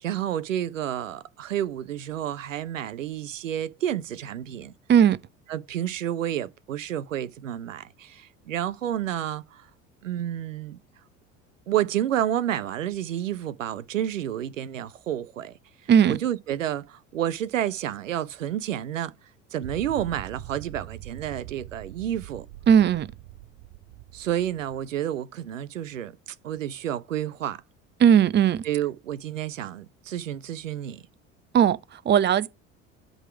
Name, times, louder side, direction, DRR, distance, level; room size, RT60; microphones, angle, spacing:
voice 1, 0.0-4.7 5.5-9.7 10.0-10.8 11.7-15.6 16.1-19.1 19.5-22.5 24.1-27.6 28.7-31.0, right 11 dB, 90° right, 0.6 m, -30 dB
sound 1, 19.6-24.9, right 15 dB, 60° right, 0.9 m, -43 dB
voice 2, 22.7-23.1 28.0-28.6 31.5-32.5, right 8 dB, 30° right, 0.6 m, -18 dB
8.0 x 3.8 x 5.8 m
hypercardioid pair, 65°, 37 cm